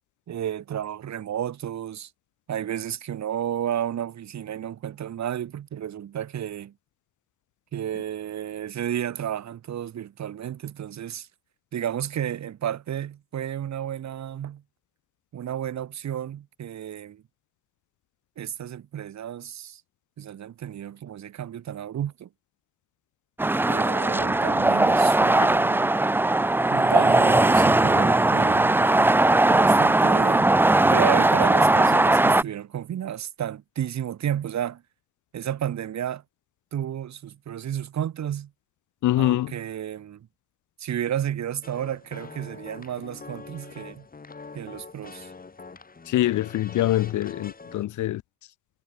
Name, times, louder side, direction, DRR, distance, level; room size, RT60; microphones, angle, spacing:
voice 1, 0.3-2.1 2.5-6.7 7.7-11.3 11.7-14.6 15.3-17.2 18.4-19.8 20.2-22.3 23.7-25.9 26.7-29.2 29.5-30.5 30.8-34.8 35.3-36.2 36.7-38.5 39.2-40.3 40.8-44.1 44.5-45.3, right 10 dB, 65° right, 5.4 m, -32 dB
sound 1, 23.4-32.4, right 2 dB, 5° right, 0.5 m, -19 dB
voice 2, 39.0-39.5 46.1-48.2, left 14 dB, 80° left, 1.3 m, -24 dB
sound 2, 41.6-47.8, left 4 dB, 30° left, 6.2 m, -44 dB
cardioid pair, 90°, 30 cm